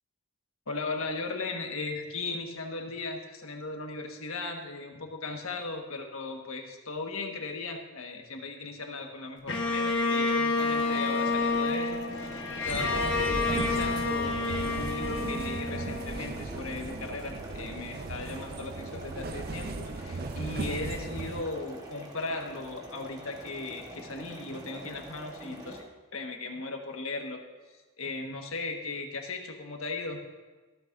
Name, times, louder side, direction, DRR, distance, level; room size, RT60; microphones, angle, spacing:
voice 1, 0.7-25.8 26.1-27.4 27.7-30.2, left 3 dB, 75° left, 3 dB, 1.5 m, -37 dB
Bowed string instrument, 9.5-16.7, left 3 dB, 55° left, 1.3 m, -29 dB
sound 1, 10.5-25.8, right 1 dB, 15° right, 1.3 m, -45 dB
sound 2, 12.7-21.4, right 3 dB, 45° right, 0.5 m, -37 dB
15.0 x 13.0 x 2.6 m, 1.3 s
head